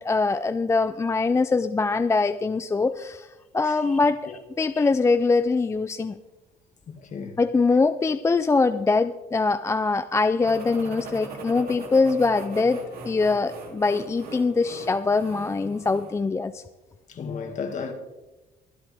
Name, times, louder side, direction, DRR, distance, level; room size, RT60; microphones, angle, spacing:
voice 1, 0.0-3.3 3.5-4.2 4.6-6.2 7.4-16.6, left 3 dB, 15° left, 0.4 m, -23 dB
voice 2, 3.6-4.0 4.3-4.4 4.7-4.9 6.9-7.4 15.7-15.8 17.1-17.9, left 5 dB, 45° left, 2.1 m, -35 dB
sound 1, 10.4-16.2, right 3 dB, 65° right, 2.9 m, -40 dB
23.5 x 8.0 x 3.5 m
cardioid pair, 110°, 17 cm